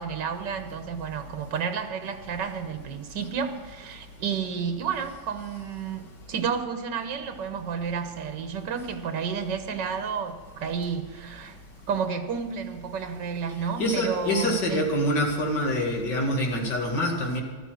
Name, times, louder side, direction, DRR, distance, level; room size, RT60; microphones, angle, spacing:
voice 1, 0.0-11.6 11.9-14.9, right 6 dB, 80° right, 7 dB, 1.7 m, -31 dB
voice 2, 13.8-17.4, equal, 75° left, 1 dB, 2.9 m, -25 dB
14.5 x 12.5 x 6.3 m, 1.4 s
omnidirectional pair, 1.9 m